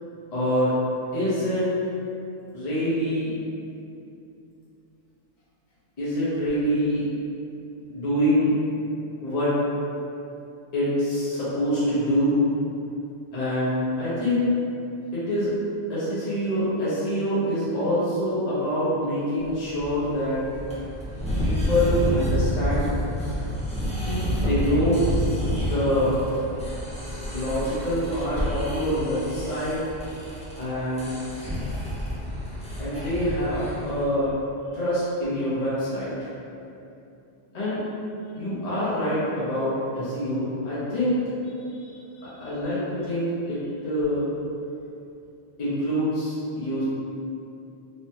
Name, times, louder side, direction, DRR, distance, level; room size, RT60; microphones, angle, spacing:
voice 1, 0.3-0.8 1.1-1.7 2.5-3.4 6.0-7.1 7.9-8.6 9.1-9.6 10.7-12.4 13.3-14.6 15.1-15.5 15.9-20.4 21.4-22.9 24.2-25.0 25.5-26.5 27.3-29.8 30.6-31.1 32.8-34.3 34.7-36.3 37.5-37.8 38.3-41.3 42.2-44.3 45.6-46.8, equal, 45° left, -11 dB, 0.7 m, -25 dB
sound 1, 19.4-34.0, equal, 10° left, 0.4 m, -29 dB
voice 2, 23.7-24.4 25.5-25.7 41.6-42.5, right 3 dB, 90° left, -8 dB, 1.1 m, -39 dB
3.1 x 2.2 x 2.7 m, 2.7 s
omnidirectional pair, 1.2 m